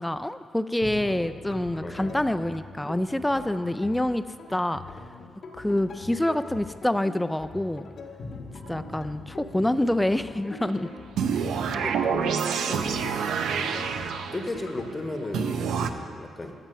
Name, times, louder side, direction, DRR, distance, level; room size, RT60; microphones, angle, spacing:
voice 1, 0.0-4.2 4.5-4.8 5.6-7.9 8.7-10.9 11.3-11.5, left 1 dB, 10° left, 12 dB, 0.4 m, -26 dB
sound 1, 0.8-15.6, left 4 dB, 60° left, 1.1 m, -42 dB
voice 2, 1.8-2.2 11.7-13.1 14.3-16.5, left 2 dB, 25° left, 5 dB, 1.0 m, -35 dB
sound 2, 11.2-14.6 15.3-15.9, right 6 dB, 85° right, 0.5 m, -27 dB
14.5 x 6.0 x 5.6 m, 2.2 s
cardioid pair, 80°, 0 cm